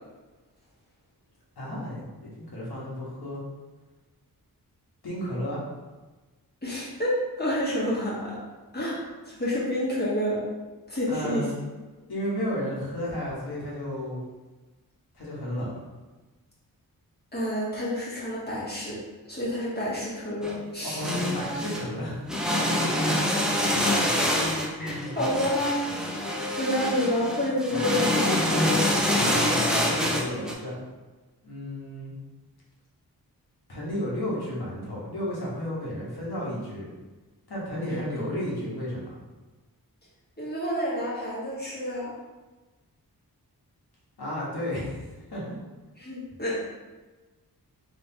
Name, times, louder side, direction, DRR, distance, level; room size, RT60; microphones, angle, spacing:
voice 1, 1.6-3.4 5.0-5.6 11.1-11.5 12.1-14.2 15.1-15.7 20.8-22.3 24.8-25.2 27.7-27.8 29.1-30.8 31.4-32.1 33.7-36.9 37.5-39.2 44.2-45.6, equal, 80° left, -6 dB, 1.3 m, -33 dB
voice 2, 6.6-8.4 8.7-9.0 9.3-10.4 10.9-11.4 17.3-19.0 19.3-21.1 22.6-22.8 24.8-25.6 26.3-28.8 37.9-38.0 40.4-42.1 46.0-46.6, left 1 dB, 25° left, -8 dB, 1.5 m, -29 dB
sound 1, 20.4-20.5 21.0-21.9 22.2-30.5, left 1 dB, ahead, 0.6 m, -26 dB
3.7 x 3.3 x 2.8 m, 1.2 s
wide cardioid pair, 80°, 37 cm